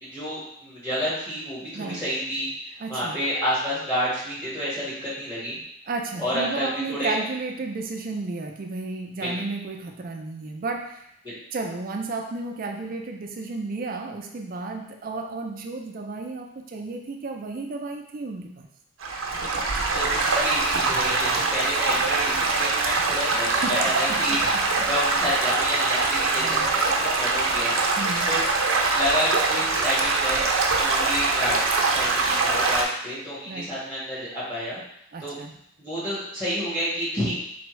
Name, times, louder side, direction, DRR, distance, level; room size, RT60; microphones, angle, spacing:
voice 1, 0.0-5.6 6.2-7.1 9.2-9.4 11.2-11.3 19.9-24.4 24.8-27.8 28.3-28.4 28.9-30.4 30.8-34.8 35.2-35.3 35.8-37.4, equal, 20° left, -10 dB, 1.7 m, -29 dB
voice 2, 1.7-2.1 2.8-3.2 5.9-11.1 11.5-18.7 23.3-24.9 26.4-26.7 28.0-28.3 33.4-33.7 35.1-35.5, right 3 dB, 45° right, 3 dB, 0.4 m, -33 dB
Stream / Gurgling / Trickle dribble, 19.0-32.8, right 3 dB, 85° right, 0.6 m, -23 dB
3.8 x 3.4 x 3.1 m, 0.73 s
head